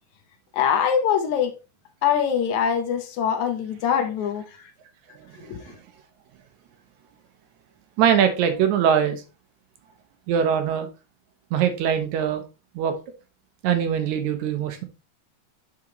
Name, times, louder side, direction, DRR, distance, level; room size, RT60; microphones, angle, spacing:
voice 1, 0.5-1.5 2.0-4.7 5.5-5.7, left 8 dB, 70° left, 2.1 m, -23 dB
voice 2, 5.3-5.8 8.0-9.2 10.3-10.9 11.5-12.4 12.8-13.0 13.6-14.8, right 8 dB, 75° right, 2.0 m, -22 dB
8.6 x 4.8 x 2.9 m
omnidirectional pair, 3.7 m